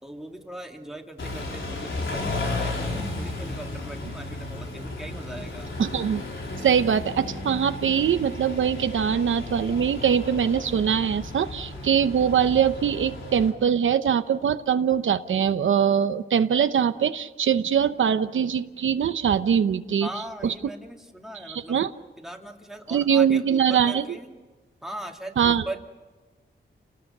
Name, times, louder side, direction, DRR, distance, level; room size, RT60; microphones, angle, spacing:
voice 1, 0.0-5.9 20.0-21.8 22.2-24.4 24.8-25.8, right 1 dB, ahead, 1 dB, 2.4 m, -39 dB
Car / Idling / Accelerating revving vroom, 1.2-13.5, left 2 dB, 80° left, 4.5 m, -34 dB
voice 2, 5.8-6.2 6.6-20.1 20.4-20.5 21.5-21.9 22.9-24.0 25.4-25.6, right 8 dB, 90° right, 10 dB, 0.9 m, -22 dB
29.5 x 18.5 x 6.7 m, 1.2 s
wide cardioid pair, 125°, 20 cm